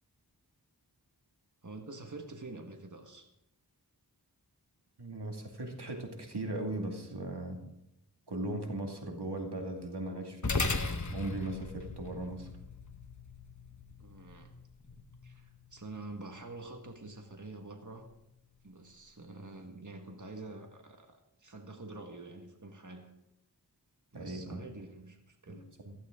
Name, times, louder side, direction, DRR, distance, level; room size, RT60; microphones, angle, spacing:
voice 1, 1.6-3.3 14.0-14.5 15.2-18.1 18.6-23.1 24.1-25.7, right 2 dB, 50° right, 3 dB, 1.7 m, -47 dB
voice 2, 5.0-7.6 8.3-12.5 24.1-24.6 25.5-25.6 25.8-26.0, right 1 dB, 85° right, 2 dB, 2.3 m, -38 dB
sound 1, 10.4-19.1, left 3 dB, 45° left, 1.1 m, -40 dB
15.5 x 15.0 x 3.8 m, 0.85 s
wide cardioid pair, 40°, 39 cm